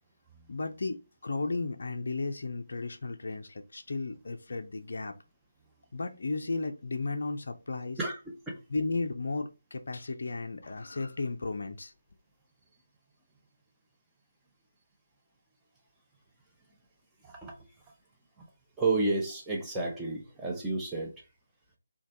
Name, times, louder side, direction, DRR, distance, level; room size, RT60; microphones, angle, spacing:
voice 1, 0.5-1.0 1.2-5.1 5.9-8.0 8.7-11.9, left 3 dB, 50° left, 0.4 m, -34 dB
voice 2, 17.2-17.5 18.4-18.5 18.8-21.2, right 2 dB, 5° right, 0.5 m, -31 dB
3.1 x 2.2 x 2.6 m
figure-of-eight pair, 155°, 0 cm